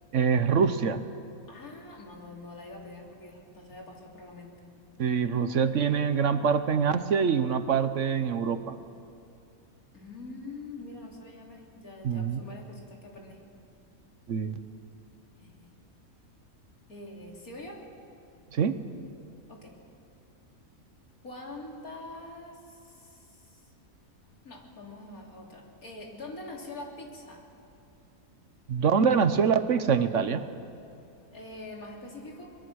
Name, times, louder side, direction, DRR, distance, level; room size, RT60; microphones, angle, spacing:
voice 1, 0.1-1.0 5.0-8.8 12.0-12.4 14.3-14.5 18.5-18.8 28.7-30.4, right 6 dB, 60° right, 11 dB, 1.2 m, -25 dB
voice 2, 1.5-4.6 9.9-13.4 15.4-15.7 16.9-17.8 19.5-19.7 21.2-23.7 24.4-27.4 31.3-32.6, left 2 dB, 85° left, -1 dB, 3.6 m, -44 dB
23.5 x 21.5 x 6.4 m, 2.7 s
omnidirectional pair, 1.5 m